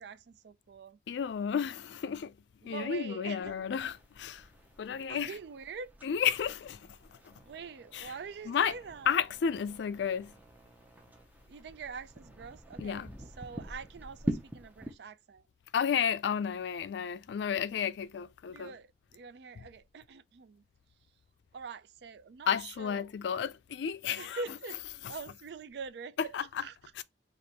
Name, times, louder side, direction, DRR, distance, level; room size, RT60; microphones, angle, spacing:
voice 1, 0.0-1.0 2.6-3.5 5.1-5.9 7.4-9.2 11.5-13.1 13.4-15.4 18.5-20.6 21.5-23.0 24.2-24.8 25.1-26.9, right 5 dB, 65° right, 0.4 m, -44 dB
voice 2, 1.1-2.3 2.6-4.4 4.8-5.3 6.0-6.8 7.9-8.1 8.5-8.7 9.1-10.3 12.8-13.1 15.7-18.7 22.5-24.4 26.3-26.4 27.0-27.1, left 7 dB, 75° left, 0.3 m, -32 dB
sound 1, 3.4-14.9, right 1 dB, 10° right, 0.6 m, -44 dB
3.3 x 2.5 x 4.1 m
head